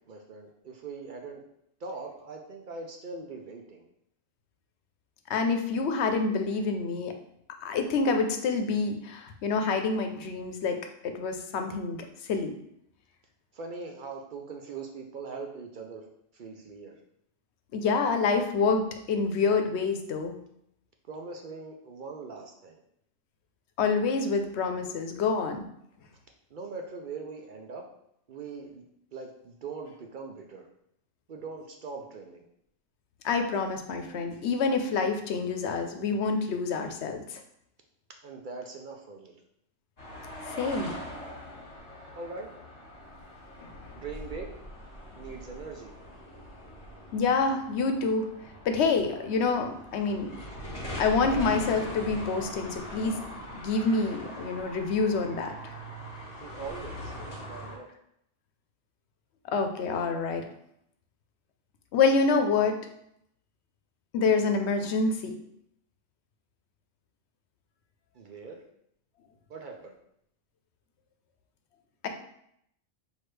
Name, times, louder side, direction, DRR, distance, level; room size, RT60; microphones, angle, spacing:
voice 1, 0.1-1.4 1.8-3.8 13.5-16.0 16.3-16.9 21.1-22.8 26.5-27.8 28.3-28.8 29.1-30.7 31.3-32.5 38.2-39.4 42.1-42.5 43.9-44.5 45.1-45.9 56.4-57.1 57.5-57.9 68.1-68.6 69.5-70.0, right 4 dB, 55° right, 2 dB, 0.6 m, -41 dB
voice 2, 5.3-7.1 7.6-10.8 11.0-12.6 17.7-20.4 23.8-25.6 33.2-37.4 40.6-41.0 43.6-43.7 47.1-48.3 48.6-50.3 51.0-53.2 53.5-55.5 59.5-60.5 61.9-62.8 64.1-65.4, left 4 dB, 75° left, 6 dB, 0.9 m, -27 dB
sound 1, 40.0-57.8, equal, 30° left, 1.6 m, -42 dB
6.0 x 2.7 x 3.2 m, 0.74 s
omnidirectional pair, 1.2 m